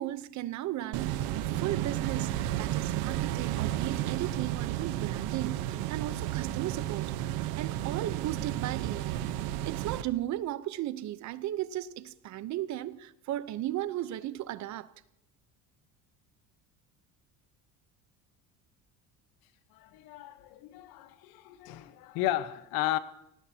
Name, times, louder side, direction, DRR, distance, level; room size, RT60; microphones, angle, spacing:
voice 1, 0.0-9.2 9.6-14.9, right 13 dB, 55° right, 0.9 m, -36 dB
sound 1, 0.9-10.0, right 13 dB, 85° right, 1.1 m, -32 dB
voice 2, 19.7-23.0, left 14 dB, 80° left, 1.2 m, -34 dB
24.5 x 18.5 x 2.9 m
cardioid pair, 135°, 35 cm